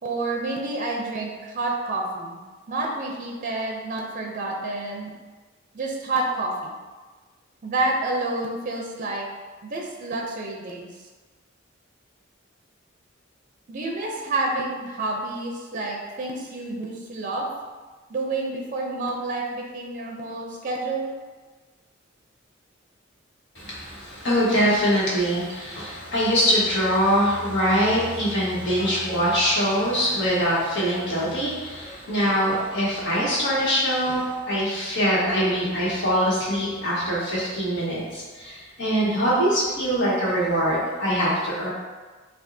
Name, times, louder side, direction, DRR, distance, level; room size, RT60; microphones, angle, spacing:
voice 1, 0.0-2.4 2.7-5.1 5.7-6.7 7.6-9.3 9.6-10.9 13.7-17.5 18.1-21.1 34.2-34.5, right 2 dB, 40° right, 0 dB, 0.5 m, -29 dB
voice 2, 23.5-41.7, equal, 60° left, -7 dB, 1.4 m, -23 dB
6.0 x 2.3 x 2.7 m, 1.3 s
head